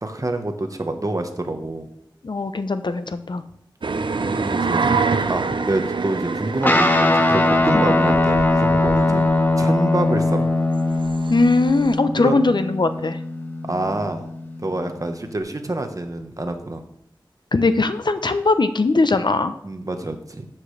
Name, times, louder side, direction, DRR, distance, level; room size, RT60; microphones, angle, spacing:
voice 1, 0.0-1.9 4.1-4.9 5.3-9.2 9.6-10.5 12.1-12.4 13.6-14.3 14.6-16.8 19.6-20.5, right 2 dB, 40° right, 6 dB, 1.2 m, -27 dB
voice 2, 2.2-3.4 7.7-7.8 9.1-9.2 11.3-13.2 17.5-19.5, left 3 dB, 65° left, 10 dB, 0.7 m, -20 dB
sound 1, 3.8-12.0, right 4 dB, 70° right, 0.5 m, -27 dB
Guitar, 6.6-15.4, left 2 dB, 25° left, 1.0 m, -21 dB
13.0 x 7.5 x 3.3 m, 0.74 s
wide cardioid pair, 60°, 8 cm